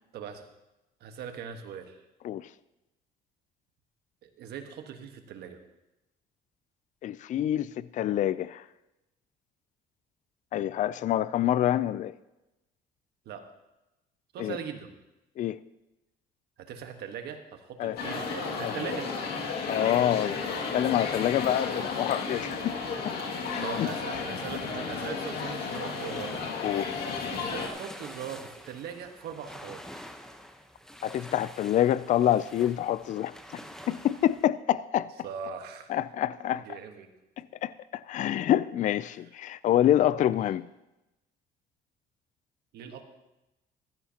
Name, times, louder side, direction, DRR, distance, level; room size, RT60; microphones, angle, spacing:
voice 1, 0.1-0.5 1.0-2.0 4.2-5.6 13.2-13.4 14.3-14.9 16.6-19.1 23.6-26.4 27.3-30.0 35.2-35.9 36.5-37.1 39.1-39.2 40.2-40.3 42.7-43.0, right 7 dB, 75° right, 1.4 m, -40 dB
voice 2, 7.0-8.6 10.5-12.1 14.4-14.6 15.4-15.6 17.8-18.0 18.6-18.7 19.7-22.7 23.0-23.1 23.5-23.9 26.6-27.0 31.0-33.6 33.9-35.1 35.9-36.8 37.6-40.7, left 11 dB, 50° left, 0.4 m, -27 dB
sound 1, 18.0-27.7, left 4 dB, 70° left, 2.1 m, -33 dB
sound 2, 23.4-34.5, equal, 5° left, 0.9 m, -48 dB
15.5 x 12.5 x 2.9 m
cardioid pair, 110°, 17 cm